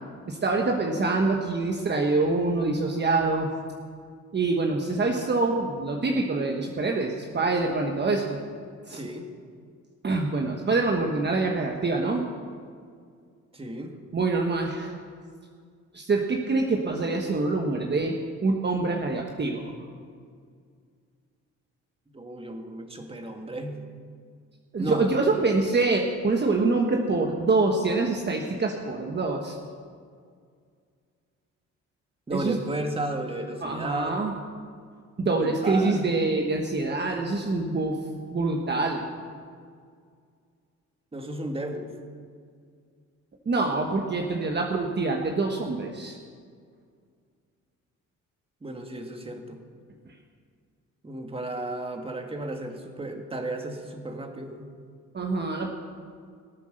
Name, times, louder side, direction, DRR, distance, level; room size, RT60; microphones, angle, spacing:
voice 1, 0.3-3.5 4.3-8.4 8.8-9.0 10.0-12.2 14.1-15.0 15.9-19.8 24.7-29.6 32.3-32.6 33.6-34.3 35.2-38.0 38.3-39.1 43.4-46.2 55.1-55.7, right 3 dB, 35° right, 1 dB, 1.4 m, -25 dB
voice 2, 8.9-9.3 13.5-14.0 22.1-23.8 24.8-25.1 32.3-34.2 35.3-36.1 41.1-41.9 48.6-49.6 51.0-54.7, right 1 dB, 20° right, 4 dB, 1.8 m, -34 dB
18.0 x 8.4 x 6.5 m, 2.1 s
cardioid pair, 90°, 30 cm